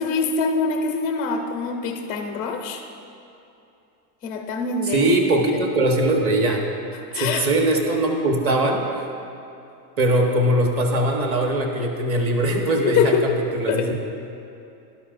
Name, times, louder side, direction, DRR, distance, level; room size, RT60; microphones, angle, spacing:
voice 1, 0.0-2.8 4.2-5.1 7.1-7.4 12.8-13.4 13.7-13.9, left 4 dB, 20° left, 4 dB, 0.4 m, -24 dB
voice 2, 4.9-6.6 7.1-9.0 10.0-13.1 13.5-13.9, right 1 dB, 30° right, 1 dB, 1.1 m, -21 dB
12.5 x 11.5 x 2.5 m, 2.7 s
supercardioid pair, 155°, 49 cm